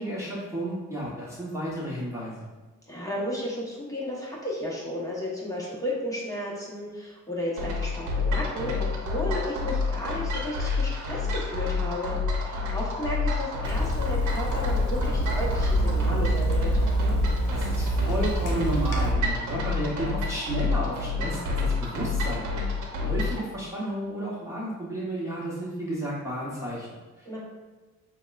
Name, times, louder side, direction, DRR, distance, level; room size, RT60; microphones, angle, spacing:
voice 1, 0.0-2.5 17.5-22.5 23.0-27.4, right 1 dB, 10° right, -7 dB, 1.0 m, -32 dB
voice 2, 2.9-16.8 27.2-27.4, left 1 dB, 10° left, -6 dB, 1.0 m, -33 dB
sound 1, 7.6-23.4, left 4 dB, 80° right, 0.9 m, -29 dB
Water tap faucet / Sink (filling or washing), 13.6-19.1, right 2 dB, 75° left, 0.8 m, -26 dB
6.7 x 2.3 x 2.4 m, 1.2 s
cardioid pair, 90°, 30 cm